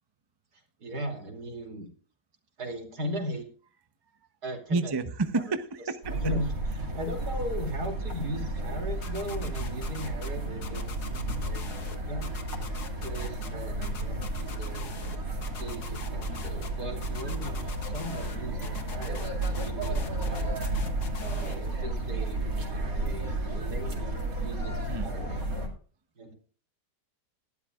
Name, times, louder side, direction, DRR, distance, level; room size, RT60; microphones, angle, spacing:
voice 1, 0.5-1.9 2.6-3.4 4.4-4.9 6.1-6.5 6.8-11.1 11.4-12.3 13.0-14.9 15.6-20.6 21.2-25.4 26.2-26.3, equal, 75° right, 2 dB, 3.3 m, -38 dB
voice 2, 4.7-6.2 18.5-19.7 24.9-25.1, right 3 dB, 25° right, 9 dB, 0.5 m, -32 dB
sound 1, 6.0-25.7, right 1 dB, 60° right, 2.9 m, -32 dB
sound 2, 9.0-10.3 10.6-12.0 12.2-13.5 13.8-15.2 15.4-16.7 17.0-18.4 18.6-21.6, left 5 dB, 75° left, 1.9 m, -44 dB
18.5 x 12.0 x 2.4 m, 0.42 s
omnidirectional pair, 1.7 m